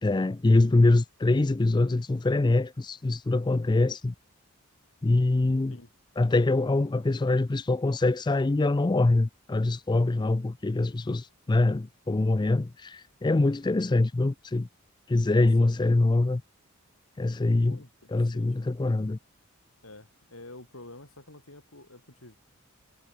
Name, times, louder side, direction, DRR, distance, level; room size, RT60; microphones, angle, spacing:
voice 1, 0.0-4.1 5.0-5.8 6.2-14.7 15.1-16.4 17.2-17.8 18.1-19.2, left 2 dB, 20° left, 0.4 m, -24 dB
voice 2, 17.7-18.7 19.8-22.4, left 2 dB, 70° left, 7.4 m, -49 dB
head